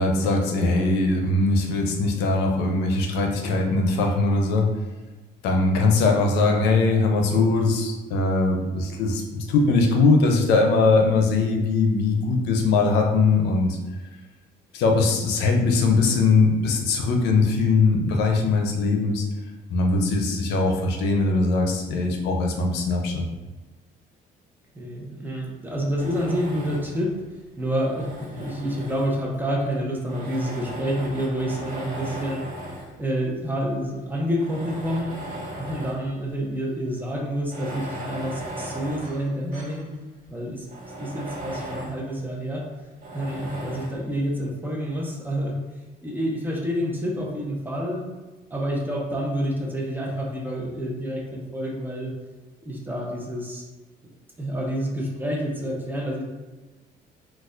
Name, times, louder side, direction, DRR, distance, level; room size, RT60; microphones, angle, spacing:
voice 1, 0.0-4.7 5.4-13.8 14.7-19.2 19.7-23.3, left 3 dB, 85° left, 2 dB, 0.6 m, -21 dB
voice 2, 24.7-27.2 27.6-32.5 33.0-35.1 35.6-39.9 40.3-40.7 41.0-42.7 43.1-45.6 46.0-48.0 48.5-52.1 52.6-53.6 54.4-56.2, equal, 10° right, -1 dB, 0.7 m, -28 dB
Tools, 26.0-27.1 27.7-29.4 30.1-33.0 33.7-33.8 34.3-36.1 36.4-36.5 37.4-39.9 40.2-40.3 40.7-42.0 43.0-44.0, right 1 dB, 60° right, 1.0 m, -37 dB
4.0 x 2.3 x 2.5 m, 1.2 s
cardioid pair, 110°, 17 cm